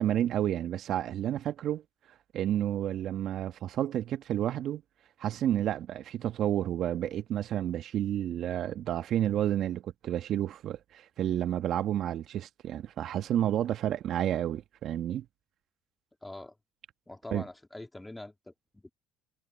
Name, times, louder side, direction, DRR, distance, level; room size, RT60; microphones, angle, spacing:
voice 1, 0.0-1.8 2.3-4.8 5.2-15.2 17.3-17.4, right 11 dB, 60° right, 1.5 m, -30 dB
voice 2, 16.2-16.5 17.1-18.9, left 2 dB, 10° left, 3.0 m, -44 dB
hypercardioid pair, 70°, 0 cm